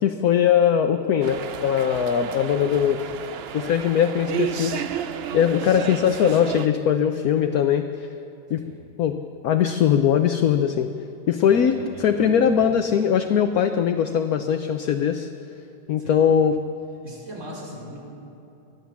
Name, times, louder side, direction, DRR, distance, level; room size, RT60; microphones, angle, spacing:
voice 1, 0.0-3.0 3.5-4.7 5.3-8.1 8.5-8.6 9.0-9.2 9.4-10.9 11.3-11.7 12.0-15.3 15.9-16.5, left 8 dB, 65° left, 7 dB, 1.2 m, -20 dB
sound 1, 1.2-6.7, right 9 dB, 65° right, 0.6 m, -32 dB
voice 2, 2.2-2.9 5.9-6.3 8.5-8.9 11.5-12.7 16.0-16.3 17.0-18.0, equal, 45° right, -3 dB, 5.0 m, -41 dB
24.5 x 16.5 x 7.2 m, 2.9 s
omnidirectional pair, 1.8 m